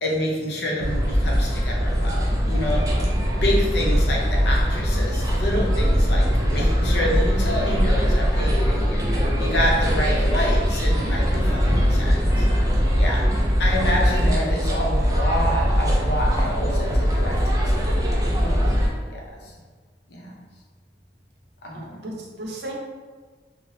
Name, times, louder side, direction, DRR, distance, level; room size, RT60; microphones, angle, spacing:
voice 1, 0.0-2.8 3.4-12.5 13.0-13.3 13.6-17.7 18.0-18.2 19.1-19.5 20.1-20.3 21.6-22.0, equal, 70° left, -2 dB, 0.6 m, -28 dB
sound 1, 0.8-18.9, equal, 20° right, 0.3 m, -21 dB
voice 2, 21.7-22.7, right 1 dB, 75° right, -1 dB, 0.6 m, -35 dB
2.7 x 2.0 x 3.1 m, 1.5 s
head